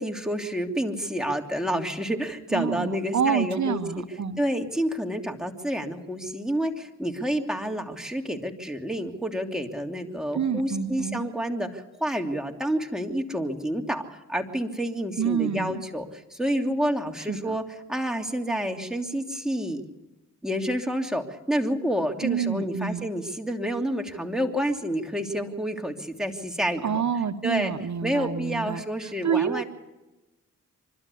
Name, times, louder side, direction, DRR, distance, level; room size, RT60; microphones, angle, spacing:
voice 1, 0.0-4.0 4.4-17.6 17.9-19.8 20.4-27.0 27.4-27.7 28.0-29.6, equal, ahead, 2 dB, 3.0 m, -29 dB
voice 2, 2.5-4.4 10.3-11.3 15.2-15.8 17.3-17.6 22.2-23.1 26.8-29.6, right 7 dB, 60° right, 10 dB, 0.9 m, -28 dB
25.0 x 13.0 x 8.5 m, 1.1 s
supercardioid pair, 40°, 32 cm